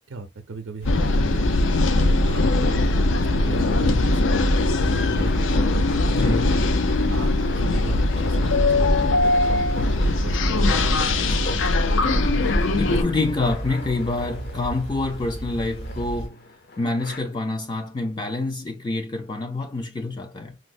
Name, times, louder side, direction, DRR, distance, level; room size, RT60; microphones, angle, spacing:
voice 1, 0.1-1.7 2.0-6.1 7.1-11.8, right 3 dB, 80° right, 0.5 m, -37 dB
sound 1, 0.8-13.0, left 2 dB, 90° left, 0.5 m, -21 dB
sound 2, 0.8-16.3, right 1 dB, 70° left, 2.0 m, -33 dB
sound 3, 2.6-17.2, left 2 dB, 55° left, 0.7 m, -41 dB
voice 2, 6.1-6.6 12.8-16.4 16.8-20.6, left 2 dB, 25° left, 0.3 m, -27 dB
4.4 x 2.0 x 2.4 m
head